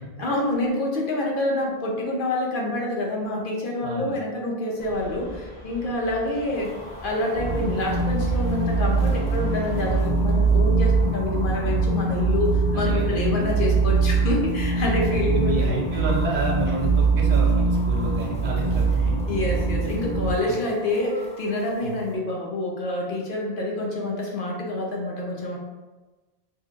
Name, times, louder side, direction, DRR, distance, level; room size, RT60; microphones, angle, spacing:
voice 1, 0.2-6.7 7.0-15.8 19.3-25.6, left 2 dB, 60° left, -2 dB, 0.8 m, -27 dB
voice 2, 3.8-4.1 12.7-13.2 15.1-19.1 21.8-21.9, right 1 dB, 80° right, -1 dB, 1.0 m, -30 dB
sound 1, 4.8-10.0, equal, 75° left, 1.1 m, -43 dB
sound 2, 6.5-22.2, equal, 10° left, 0.5 m, -43 dB
sound 3, 7.3-20.3, right 4 dB, 60° right, 0.7 m, -22 dB
4.0 x 2.8 x 2.4 m, 1.2 s
omnidirectional pair, 1.1 m